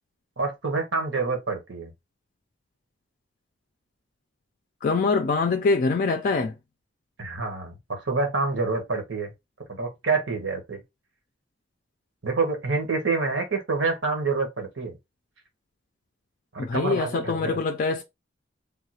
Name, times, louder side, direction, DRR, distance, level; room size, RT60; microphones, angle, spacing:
voice 1, 0.4-1.9 7.2-9.3 9.7-10.8 12.2-15.0 16.5-17.6, right 3 dB, 85° right, 1.2 m, -27 dB
voice 2, 4.8-6.5 16.6-18.0, left 4 dB, 45° left, 0.4 m, -24 dB
3.5 x 2.3 x 2.8 m
head